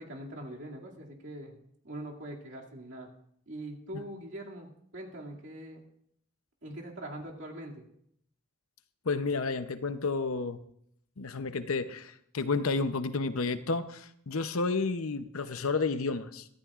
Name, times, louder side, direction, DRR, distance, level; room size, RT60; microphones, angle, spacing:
voice 1, 0.0-1.6 1.8-3.1 3.5-5.8 6.6-7.8, right 1 dB, 60° right, -2 dB, 2.5 m, -42 dB
voice 2, 9.0-10.6 11.2-16.5, left 4 dB, 75° left, 11 dB, 0.8 m, -31 dB
23.0 x 14.5 x 2.5 m, 0.71 s
head